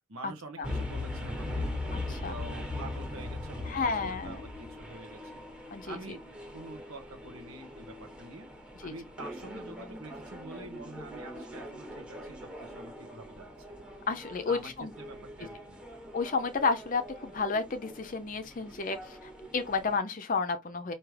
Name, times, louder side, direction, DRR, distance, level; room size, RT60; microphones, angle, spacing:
voice 1, 0.1-1.7 2.0-5.4 5.8-6.2 6.5-8.5 8.8-13.7 14.5-15.8, right 2 dB, 85° right, 1.0 m, -47 dB
sound 1, 0.6-20.0, left 1 dB, 5° right, 1.1 m, -41 dB
voice 2, 1.9-2.3 3.7-4.4 5.7-6.0 8.8-8.9 14.1-14.9 16.1-20.9, left 4 dB, 40° left, 0.5 m, -31 dB
4.9 x 2.8 x 3.2 m
head